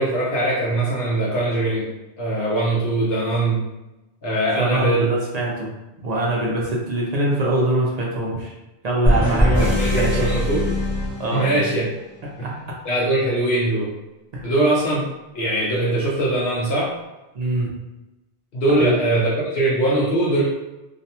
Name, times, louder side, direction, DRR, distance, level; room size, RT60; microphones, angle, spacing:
voice 1, 0.0-1.9 2.2-3.6 4.2-5.1 9.6-10.6 11.3-11.9 12.4-12.5 12.8-13.9 14.4-15.1 15.3-16.9 18.5-20.4, right 1 dB, 70° left, -6 dB, 0.9 m, -21 dB
voice 2, 4.6-5.7 6.0-8.5 8.8-10.3 11.2-11.5 12.4-12.5 14.3-14.5 17.3-17.7 18.8-18.9, right 2 dB, 50° right, -3 dB, 0.5 m, -23 dB
sound 1, 9.0-11.8, left 1 dB, 20° left, 0.8 m, -21 dB
2.5 x 2.2 x 2.7 m, 1.0 s
omnidirectional pair, 1.1 m